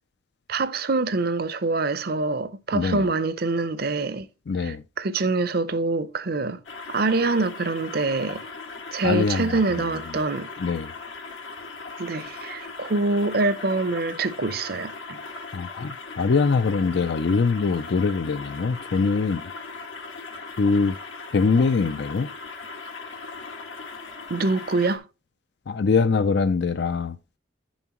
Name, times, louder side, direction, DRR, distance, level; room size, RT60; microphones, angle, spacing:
voice 1, 0.5-4.3 4.6-6.6 6.9-8.5 8.9-10.5 12.0-15.2 24.3-25.0, right 3 dB, 50° right, 0.6 m, -25 dB
voice 2, 2.7-3.0 4.5-4.8 9.0-9.6 10.6-10.9 15.5-19.4 20.6-21.0 21.3-22.3 25.7-27.2, left 4 dB, 60° left, 0.4 m, -23 dB
sound 1, 6.6-25.0, left 4 dB, 80° left, 2.0 m, -39 dB
10.0 x 7.2 x 3.0 m
head